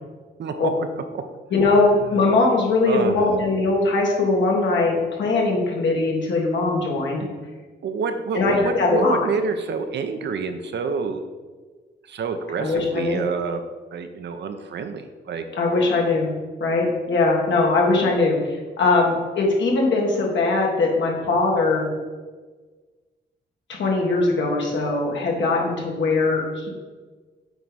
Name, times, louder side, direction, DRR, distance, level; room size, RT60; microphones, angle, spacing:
voice 1, 0.4-1.2 2.0-2.2 2.9-3.3 7.8-11.2 12.0-13.6 13.9-15.4 15.8-15.9, right 5 dB, 70° right, 7 dB, 0.7 m, -28 dB
voice 2, 1.5-7.3 8.3-9.3 12.6-13.3 15.5-16.3 16.6-21.9 23.8-26.7, left 3 dB, 75° left, -1 dB, 1.8 m, -21 dB
8.0 x 4.6 x 4.1 m, 1.4 s
cardioid pair, 100°, 19 cm